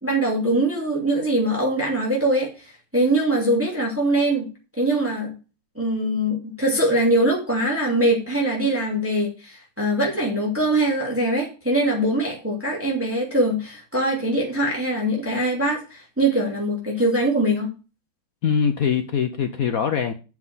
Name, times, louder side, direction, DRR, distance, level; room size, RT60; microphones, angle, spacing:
voice 1, 0.0-4.5 4.8-5.3 5.8-17.7, right 1 dB, 5° right, -2 dB, 2.6 m, -22 dB
voice 2, 18.4-20.1, left 7 dB, 60° left, 7 dB, 1.0 m, -22 dB
7.7 x 6.0 x 7.4 m, 0.33 s
omnidirectional pair, 2.1 m